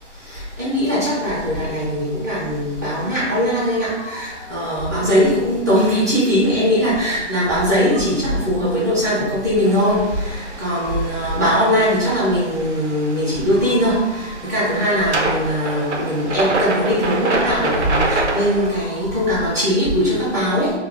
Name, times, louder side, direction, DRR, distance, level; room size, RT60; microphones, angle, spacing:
voice 1, 0.6-10.0 10.2-20.7, equal, 15° right, -12 dB, 0.6 m, -20 dB
sound 1, 9.6-18.7, right 2 dB, 65° right, 0.6 m, -27 dB
2.7 x 2.2 x 3.7 m, 1.2 s
figure-of-eight pair, 160°, 37 cm